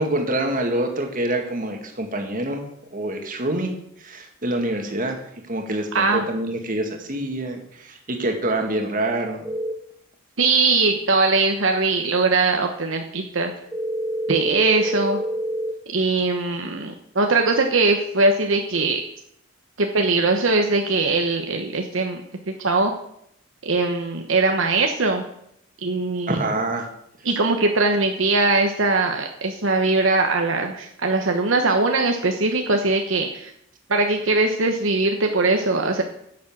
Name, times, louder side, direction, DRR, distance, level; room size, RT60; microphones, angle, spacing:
voice 1, 0.0-2.6 2.9-3.7 4.0-5.2 5.5-9.5 26.3-26.9, right 1 dB, 40° right, 3 dB, 1.9 m, -26 dB
voice 2, 5.9-6.2 10.4-13.5 14.3-15.2 15.9-19.0 19.8-22.2 22.5-22.9 23.6-25.2 25.8-26.4 27.2-33.5 33.9-36.0, right 3 dB, 70° right, 4 dB, 1.1 m, -21 dB
sound 1, 9.4-9.7 13.7-15.7, right 1 dB, 10° right, 1.4 m, -27 dB
10.5 x 7.4 x 7.3 m, 0.75 s
head